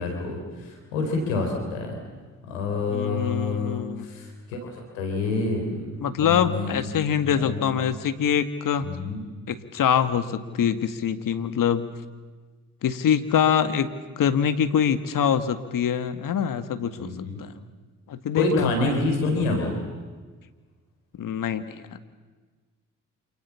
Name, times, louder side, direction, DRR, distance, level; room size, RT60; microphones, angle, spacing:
voice 1, 0.0-2.0 2.5-5.9 6.1-6.8 7.2-7.7 8.8-9.2 17.0-17.4 18.3-19.7, left 3 dB, 85° left, 3 dB, 4.4 m, -27 dB
voice 2, 2.9-4.1 6.0-8.9 9.5-11.9 12.8-13.9 14.2-17.5 18.1-18.7 21.2-22.0, left 8 dB, 60° left, 10 dB, 2.0 m, -24 dB
28.0 x 28.0 x 7.2 m, 1.4 s
hypercardioid pair, 45°, 38 cm